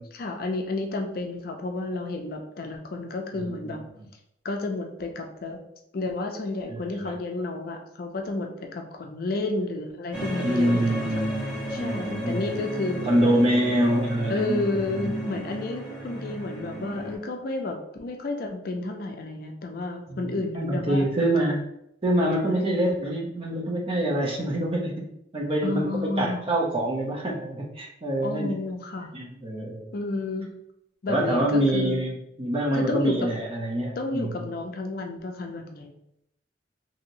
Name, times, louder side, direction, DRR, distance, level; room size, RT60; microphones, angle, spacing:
voice 1, 0.0-3.8 4.4-5.6 5.9-11.2 11.7-13.3 14.3-21.1 22.5-22.8 25.6-26.4 28.2-29.1 29.9-30.5 31.0-32.1 32.7-33.3 34.0-35.9, left 2 dB, 55° left, 4 dB, 0.4 m, -31 dB
voice 2, 6.7-7.1 10.4-12.4 13.1-15.4 20.1-21.6 22.0-24.9 25.3-25.9 26.2-28.5 29.1-29.9 31.1-34.5, right 1 dB, 30° right, -1 dB, 0.6 m, -26 dB
sound 1, 10.1-17.2, right 1 dB, 5° right, 1.0 m, -34 dB
2.9 x 2.7 x 2.6 m, 0.77 s
head